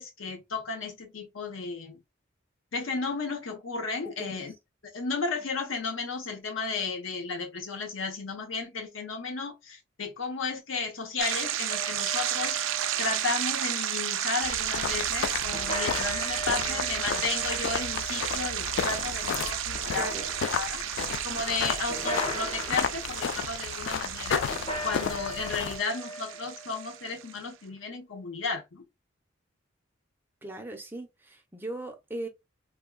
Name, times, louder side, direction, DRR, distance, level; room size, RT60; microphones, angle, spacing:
voice 1, 0.0-2.0 2.7-4.5 4.9-12.6 13.0-20.2 20.5-20.8 21.2-24.4 24.8-28.8, left 4 dB, 90° left, 0.8 m, -34 dB
sound 1, 11.2-27.4, right 10 dB, 80° right, 0.4 m, -32 dB
sound 2, 11.7-13.7 15.5-19.3 19.7-20.7 21.9-23.0 24.5-27.2, left 1 dB, 30° left, 0.8 m, -39 dB
sound 3, 14.4-25.8, left 7 dB, 65° left, 0.3 m, -33 dB
voice 2, 16.6-17.0 19.9-20.3 30.4-32.3, right 2 dB, 10° right, 0.6 m, -39 dB
3.5 x 2.2 x 2.2 m
head